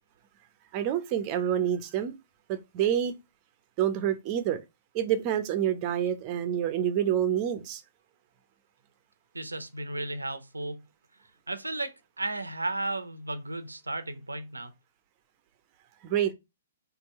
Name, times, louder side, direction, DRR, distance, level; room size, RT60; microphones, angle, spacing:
voice 1, 0.7-2.1 2.5-3.1 3.8-4.6 4.9-7.8 16.0-16.3, right 10 dB, 35° right, 0.8 m, -27 dB
voice 2, 9.3-10.8 11.5-14.7, right 2 dB, 85° right, 0.7 m, -34 dB
4.5 x 2.7 x 4.1 m
figure-of-eight pair, 120°, 0 cm